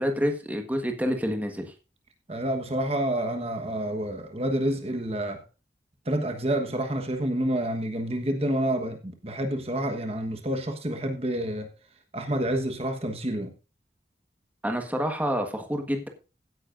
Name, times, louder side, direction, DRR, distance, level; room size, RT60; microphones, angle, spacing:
voice 1, 0.0-1.7 14.6-16.1, equal, 10° right, 1.5 m, -28 dB
voice 2, 2.3-5.4 6.0-11.7 12.1-13.5, right 1 dB, 35° right, 1.3 m, -28 dB
16.0 x 9.8 x 2.6 m
head